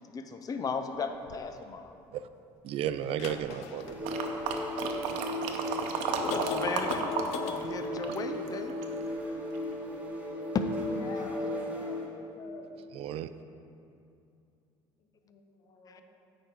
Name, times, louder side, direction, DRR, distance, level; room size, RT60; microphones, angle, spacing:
voice 1, 0.0-2.0 6.0-7.1 7.5-8.8 15.9-16.0, left 5 dB, 35° left, 7 dB, 0.5 m, -36 dB
sound 1, 1.3-1.4 3.1-5.0 5.6-5.7 6.3-7.6, left 9 dB, 80° left, 0.5 m, -39 dB
voice 2, 2.6-4.2 12.9-13.3, right 10 dB, 60° right, 12 dB, 0.4 m, -34 dB
sound 2, 3.8-12.2, left 1 dB, 15° right, 1.4 m, -36 dB
sound 3, 4.0-7.3 7.6-9.0 9.5-9.6, right 6 dB, 80° right, 0.7 m, -33 dB
voice 3, 10.9-12.7 15.2-16.0, left 4 dB, 60° left, 2 dB, 1.2 m, -47 dB
8.5 x 5.1 x 4.7 m, 2.6 s
supercardioid pair, 90°, 11 cm